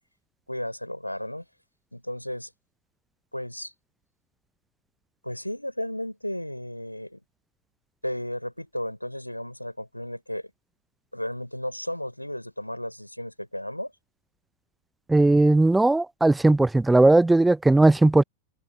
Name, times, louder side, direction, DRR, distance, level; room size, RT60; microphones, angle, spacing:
voice 1, 0.5-1.4 1.9-2.5 3.3-3.7 5.2-7.2 8.0-10.5 11.1-13.9, left 1 dB, 90° left, 5.8 m, -34 dB
voice 2, 15.1-18.2, right 2 dB, 5° right, 0.7 m, -18 dB
figure-of-eight pair, 90°, 0 cm